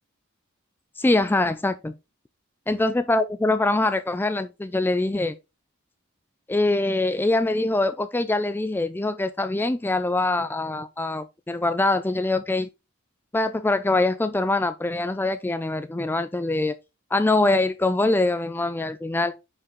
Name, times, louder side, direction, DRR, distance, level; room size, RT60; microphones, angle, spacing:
voice 1, 1.0-1.9 2.7-5.3 6.5-12.7 13.3-16.7 17.1-19.4, left 2 dB, 10° left, 0.3 m, -23 dB
8.7 x 4.6 x 3.0 m
head